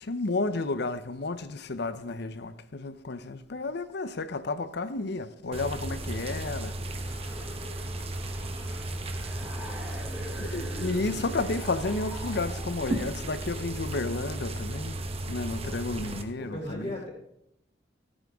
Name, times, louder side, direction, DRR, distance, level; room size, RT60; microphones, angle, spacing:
voice 1, 0.0-6.8 7.0-7.5 10.3-15.0 15.3-17.1, left 3 dB, 65° left, 0.7 m, -32 dB
sound 1, 5.5-16.2, right 1 dB, 35° right, 0.9 m, -35 dB
sound 2, 7.2-13.1, equal, 10° right, 3.3 m, -45 dB
voice 2, 9.5-10.2 16.4-17.1, left 1 dB, 35° left, 4.5 m, -39 dB
14.5 x 8.9 x 3.6 m
head